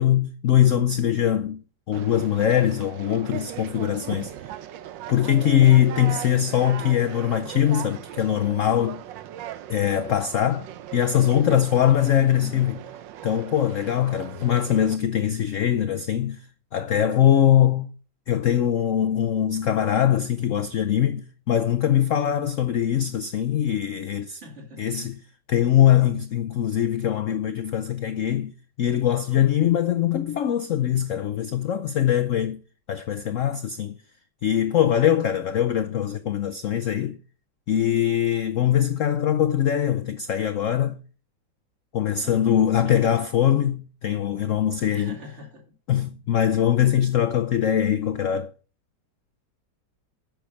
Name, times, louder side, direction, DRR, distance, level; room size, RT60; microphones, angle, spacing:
voice 1, 0.0-1.6 1.9-4.3 5.1-9.0 9.7-10.7 10.9-12.8 13.2-16.4 16.7-17.9 18.3-24.4 24.8-25.2 25.5-28.5 28.8-32.6 32.9-33.9 34.4-37.2 37.7-41.0 41.9-45.1 45.9-48.5, left 10 dB, 85° left, 0.6 m, -22 dB
Conversation, 1.9-15.0, right 11 dB, 75° right, 1.4 m, -38 dB
voice 2, 12.2-12.7 14.5-14.7 24.4-25.1 42.2-43.3 44.9-45.7, left 2 dB, 35° right, 2.3 m, -41 dB
9.2 x 6.4 x 6.2 m
omnidirectional pair, 2.1 m